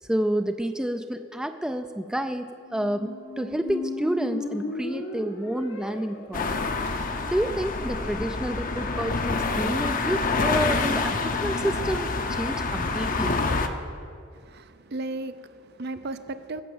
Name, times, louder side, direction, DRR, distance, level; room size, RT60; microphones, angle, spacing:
voice 1, 0.0-6.5 7.3-13.4, right 1 dB, 5° right, 8 dB, 0.3 m, -29 dB
Squeak, 2.6-8.5, left 2 dB, 85° left, 1.4 m, -37 dB
sound 1, 6.3-13.7, left 3 dB, 45° left, 0.7 m, -27 dB
voice 2, 14.3-16.6, right 2 dB, 55° right, 11 dB, 0.6 m, -35 dB
14.5 x 6.4 x 7.9 m, 2.3 s
head